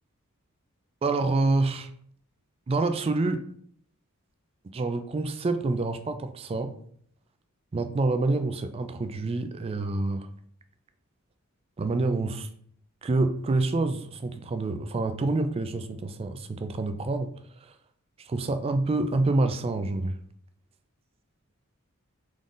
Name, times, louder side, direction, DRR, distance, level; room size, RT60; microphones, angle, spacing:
voice 1, 1.0-1.9 2.7-3.4 4.7-6.7 7.7-10.3 11.8-12.5 13.0-17.8 18.2-20.2, right 2 dB, 25° right, 9 dB, 0.3 m, -27 dB
3.8 x 3.7 x 3.7 m, 0.64 s
head